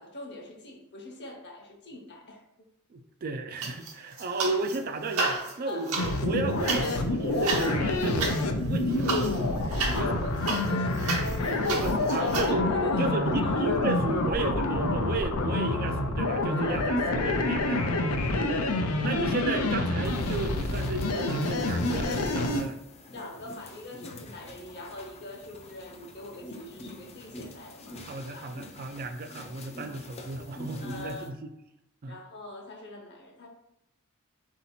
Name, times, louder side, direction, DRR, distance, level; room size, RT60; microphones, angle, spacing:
voice 1, 0.0-2.4 4.2-4.3 5.7-5.9 9.7-11.6 12.1-13.8 16.5-16.8 18.1-18.8 23.1-28.0 28.3-28.5 29.9-30.0 30.8-31.3 32.1-33.5, left 1 dB, 50° left, 1 dB, 0.9 m, -43 dB
voice 2, 2.9-9.2 9.9-10.1 11.4-17.9 18.8-22.8 28.0-31.5 32.0-32.2, right 3 dB, 40° right, 6 dB, 0.4 m, -33 dB
sound 1, 3.6-4.8 5.1-12.5, right 3 dB, 70° right, 0.9 m, -33 dB
sound 2, 6.0-22.6, left 2 dB, 75° left, 0.5 m, -27 dB
sound 3, 20.0-31.3, left 1 dB, 30° left, 0.5 m, -45 dB
3.9 x 2.7 x 4.3 m, 0.83 s
head